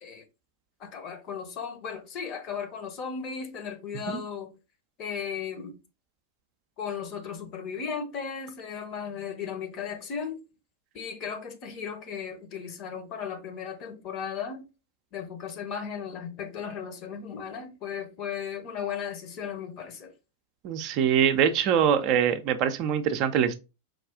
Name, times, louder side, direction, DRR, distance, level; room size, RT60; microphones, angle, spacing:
voice 1, 0.8-4.5 5.0-5.8 6.8-10.4 10.9-14.6 15.1-20.1, left 7 dB, 35° left, 0.8 m, -36 dB
voice 2, 20.6-23.6, right 8 dB, 40° right, 0.5 m, -23 dB
4.8 x 2.3 x 3.5 m
figure-of-eight pair, 90°, 0 cm